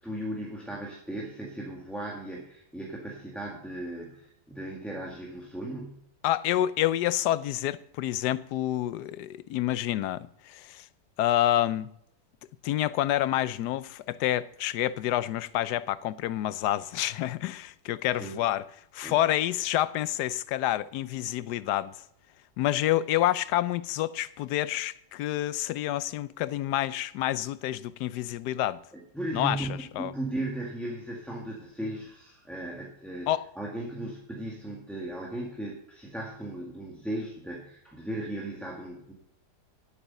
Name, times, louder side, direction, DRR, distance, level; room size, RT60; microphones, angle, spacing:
voice 1, 0.0-6.0 18.2-18.4 19.0-19.2 28.9-33.3 33.6-39.1, right 1 dB, ahead, 1.6 m, -37 dB
voice 2, 6.2-10.9 11.2-11.9 12.6-18.7 18.9-22.0 22.6-28.8 29.3-29.7 30.0-30.1 33.3-33.5, left 13 dB, 80° left, 1.2 m, -28 dB
11.5 x 8.5 x 5.4 m
omnidirectional pair, 1.8 m